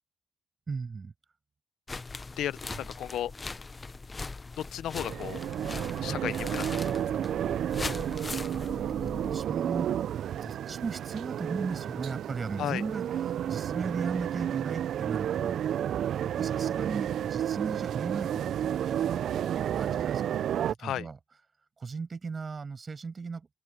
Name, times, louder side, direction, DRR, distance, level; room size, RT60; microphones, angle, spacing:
voice 1, 0.7-1.1 2.7-2.9 8.6-9.9 10.4-15.8 16.2-19.3 19.6-20.4 20.7-21.2 21.8-23.5, right 4 dB, 35° right, 7.0 m, -37 dB
sound 1, 1.9-9.4, left 3 dB, 25° left, 0.7 m, -40 dB
voice 2, 2.4-3.3 4.6-5.4 6.0-7.0 12.6-12.8 20.8-21.1, left 11 dB, 75° left, 0.6 m, -34 dB
sound 2, 4.9-20.7, right 10 dB, 70° right, 0.4 m, -31 dB
open air
cardioid pair, 90°, 0 cm